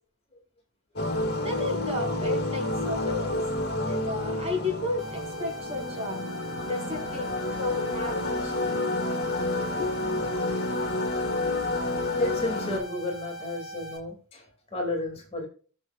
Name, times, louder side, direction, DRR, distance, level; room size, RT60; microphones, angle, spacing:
sound 1, 1.0-12.8, left 2 dB, 50° left, 1.6 m, -29 dB
voice 1, 1.4-3.4 3.8-6.2 6.6-7.3 7.6-8.8 9.4-9.9, left 2 dB, 30° right, -1 dB, 4.8 m, -33 dB
sound 2, 5.0-14.0, right 1 dB, ahead, 3.3 m, -41 dB
voice 2, 12.2-15.5, left 2 dB, 30° left, 2 dB, 2.5 m, -32 dB
19.5 x 6.7 x 2.5 m, 0.41 s
head